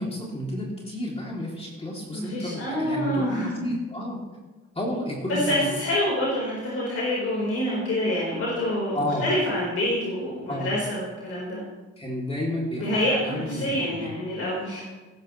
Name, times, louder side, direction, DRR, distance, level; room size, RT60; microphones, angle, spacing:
voice 1, 0.0-4.2 4.7-5.7 8.9-9.3 10.5-10.7 12.0-13.0 13.2-14.1, left 1 dB, 20° left, -3 dB, 2.9 m, -31 dB
voice 2, 2.1-3.5 5.3-11.6 12.8-14.8, left 1 dB, 50° left, -5 dB, 4.4 m, -27 dB
18.0 x 10.5 x 3.2 m, 1.2 s
cardioid pair, 90°, 30 cm